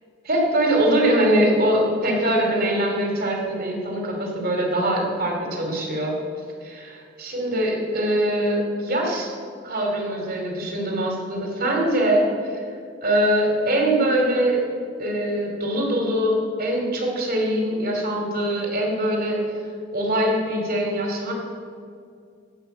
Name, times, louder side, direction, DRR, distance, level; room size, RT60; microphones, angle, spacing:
voice 1, 0.2-6.1 6.6-9.3 9.6-12.6 13.0-14.6 15.0-19.4 19.9-21.3, right 1 dB, 55° right, 1 dB, 2.7 m, -22 dB
16.5 x 5.6 x 7.8 m, 2.3 s
head